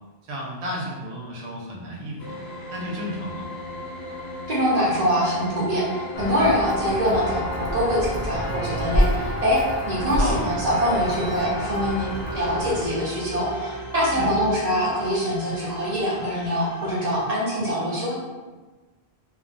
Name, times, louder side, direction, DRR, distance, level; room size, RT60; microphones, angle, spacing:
voice 1, 0.2-2.3 2.7-3.5 10.0-10.5 14.1-14.3, equal, 90° right, -3 dB, 0.9 m, -32 dB
sound 1, 2.2-17.2, equal, 75° left, 0.9 m, -37 dB
voice 2, 4.5-9.6 9.9-18.1, equal, 45° right, -6 dB, 0.7 m, -24 dB
Walk footsteps, 6.2-12.9, equal, 50° left, 0.5 m, -28 dB
2.5 x 2.1 x 2.5 m, 1.3 s
omnidirectional pair, 1.1 m